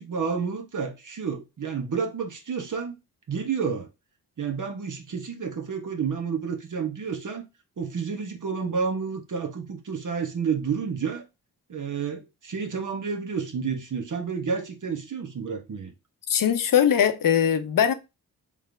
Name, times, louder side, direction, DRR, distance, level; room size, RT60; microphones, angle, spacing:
voice 1, 0.0-2.9 3.3-3.9 4.4-7.4 7.8-11.2 11.7-15.9, right 6 dB, 50° right, 1.3 m, -30 dB
voice 2, 16.3-17.9, left 9 dB, 55° left, 0.7 m, -21 dB
3.5 x 3.4 x 3.4 m
supercardioid pair, 55°, 40 cm